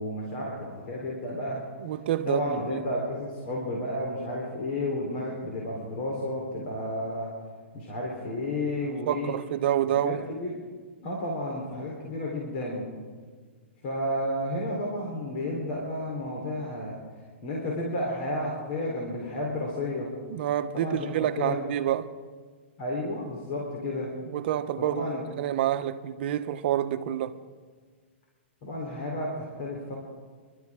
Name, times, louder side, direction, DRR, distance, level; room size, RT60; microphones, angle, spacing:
voice 1, 0.0-1.6 2.3-7.3 7.7-9.3 9.9-10.6 11.0-12.9 13.8-17.0 17.4-20.1 20.7-21.6 22.8-24.1 24.8-25.2 28.6-30.0, left 1 dB, 50° left, 3.6 m, -32 dB
voice 2, 1.8-2.8 9.1-10.2 20.3-22.1 24.3-25.1 25.4-27.4, right 11 dB, 55° right, 0.8 m, -28 dB
27.5 x 12.0 x 3.6 m
hypercardioid pair, 140°, 7 cm